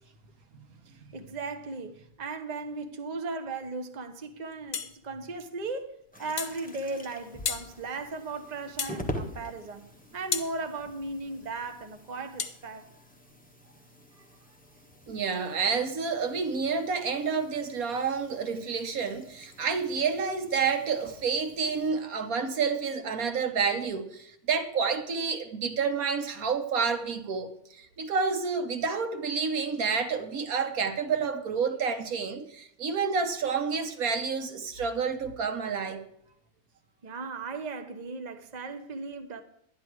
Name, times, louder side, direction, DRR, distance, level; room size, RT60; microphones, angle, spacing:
voice 1, 0.9-9.9 10.1-12.9 37.0-39.4, right 3 dB, 30° right, 1.1 m, -37 dB
sound 1, 4.7-5.0 6.4-6.6 7.5-7.7 8.8-9.0 10.3-10.5 12.4-12.6, left 7 dB, 60° left, 1.3 m, -32 dB
sound 2, 6.1-21.9, equal, 5° left, 1.3 m, -46 dB
voice 2, 15.1-27.5 27.8-36.0, right 5 dB, 75° right, 1.7 m, -29 dB
11.5 x 11.0 x 4.7 m
omnidirectional pair, 1.5 m